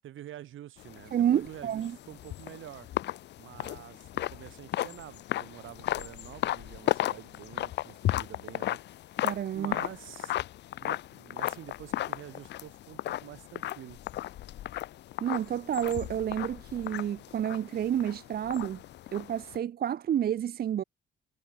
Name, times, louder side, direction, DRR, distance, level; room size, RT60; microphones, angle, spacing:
voice 1, 0.0-2.9 3.4-8.8 9.5-10.3 10.8-14.0, right 12 dB, 75° right, 4.1 m, -47 dB
sound 1, 0.8-19.6, left 13 dB, 60° left, 0.4 m, -35 dB
voice 2, 1.1-2.0 9.2-9.7 15.2-18.8 19.1-20.8, right 10 dB, 50° right, 0.6 m, -30 dB
cardioid pair, 95°, 20 cm